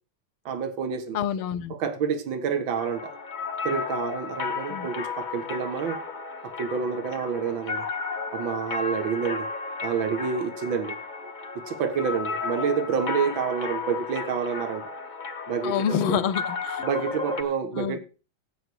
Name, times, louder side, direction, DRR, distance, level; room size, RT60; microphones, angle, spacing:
voice 1, 0.5-1.2 1.7-3.2 3.6-6.0 6.4-7.9 8.3-9.5 9.8-11.0 11.6-14.9 15.5-16.2 16.8-18.0, right 6 dB, 65° right, 2.2 m, -28 dB
voice 2, 1.1-1.7 4.7-4.9 15.6-16.8 17.8-18.0, left 8 dB, 75° left, 1.6 m, -27 dB
sound 1, 2.8-17.4, left 4 dB, 40° left, 0.6 m, -34 dB
15.5 x 5.6 x 6.3 m
omnidirectional pair, 2.4 m